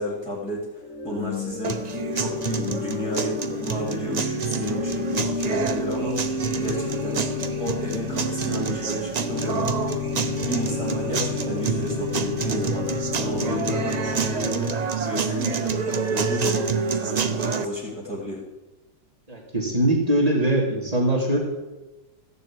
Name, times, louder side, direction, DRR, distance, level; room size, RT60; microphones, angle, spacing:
voice 1, 0.0-6.3 6.5-18.4, equal, 5° left, -6 dB, 2.4 m, -32 dB
Organ / Church bell, 0.8-15.0, left 4 dB, 45° left, 2.4 m, -31 dB
sound 1, 1.6-17.7, right 5 dB, 55° right, 0.4 m, -28 dB
voice 2, 19.3-21.4, right 1 dB, 20° right, -2 dB, 2.9 m, -22 dB
15.0 x 6.9 x 8.6 m, 1.1 s
omnidirectional pair, 1.8 m